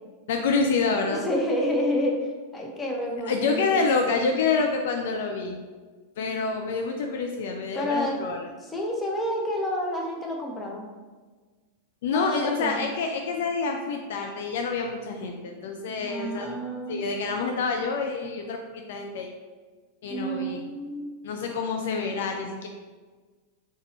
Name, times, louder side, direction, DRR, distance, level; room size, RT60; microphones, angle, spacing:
voice 1, 0.3-1.2 3.2-5.6 6.2-8.5 12.0-16.5 16.9-19.3 20.0-20.6 21.2-22.7, left 4 dB, 55° left, 3 dB, 0.4 m, -27 dB
voice 2, 1.1-2.2 2.5-3.8 7.7-8.2 8.6-10.9 12.1-12.9 16.0-17.0 20.1-21.1, equal, 15° left, -1 dB, 0.8 m, -29 dB
4.0 x 3.9 x 3.0 m, 1.4 s
figure-of-eight pair, 90°, 0 cm